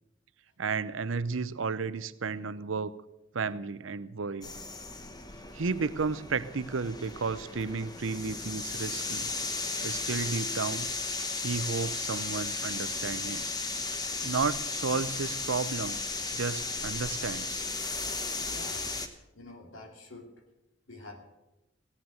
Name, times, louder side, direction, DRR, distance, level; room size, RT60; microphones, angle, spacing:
voice 1, 0.6-2.9 3.3-4.5 5.5-9.3 9.8-10.9 11.4-13.4 14.2-16.0 16.3-17.6, right 4 dB, 85° right, 15 dB, 0.7 m, -33 dB
sound 1, 4.4-19.1, left 3 dB, 20° left, 1.0 m, -35 dB
voice 2, 18.4-18.9 19.3-20.3 20.9-21.2, left 2 dB, 85° left, 3 dB, 2.7 m, -47 dB
16.5 x 9.6 x 7.7 m, 0.96 s
head